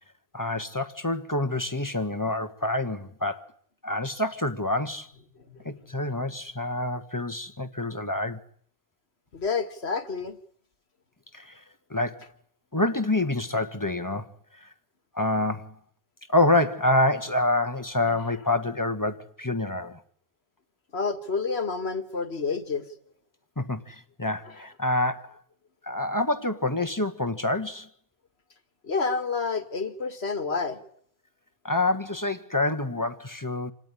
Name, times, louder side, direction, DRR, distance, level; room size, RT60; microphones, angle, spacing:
voice 1, 0.3-3.4 3.8-5.1 5.6-8.4 11.3-11.5 11.9-12.2 12.7-14.3 14.6-14.7 15.1-15.7 16.3-20.0 23.6-25.4 25.8-27.9 31.6-33.7, left 2 dB, 20° left, 1.4 m, -27 dB
voice 2, 9.3-10.4 20.9-22.8 28.8-30.8, left 4 dB, 85° left, 2.3 m, -29 dB
27.5 x 19.0 x 10.0 m
omnidirectional pair, 1.1 m